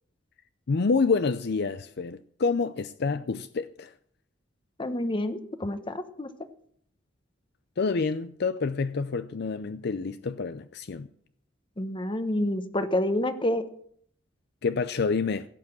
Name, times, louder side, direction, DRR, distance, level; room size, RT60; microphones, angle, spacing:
voice 1, 0.7-3.9 7.8-11.1 14.6-15.4, left 4 dB, 60° left, 0.5 m, -28 dB
voice 2, 4.8-6.3 11.8-13.7, left 1 dB, 25° left, 1.1 m, -28 dB
17.0 x 8.3 x 7.4 m
head